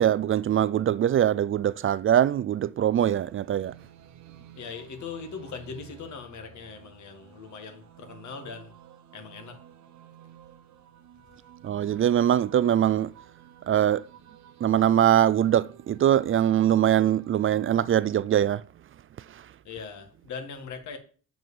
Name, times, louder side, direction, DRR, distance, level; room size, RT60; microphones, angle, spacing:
voice 1, 0.0-3.7 11.6-13.1 13.7-14.1 14.6-18.6 19.2-19.5, right 10 dB, 45° right, 0.4 m, -22 dB
sound 1, 2.9-18.2, right 10 dB, 65° right, 1.1 m, -52 dB
voice 2, 4.5-8.8 9.1-9.6 19.6-21.0, left 5 dB, 70° left, 1.9 m, -40 dB
7.8 x 4.9 x 7.0 m
cardioid pair, 90°, 30 cm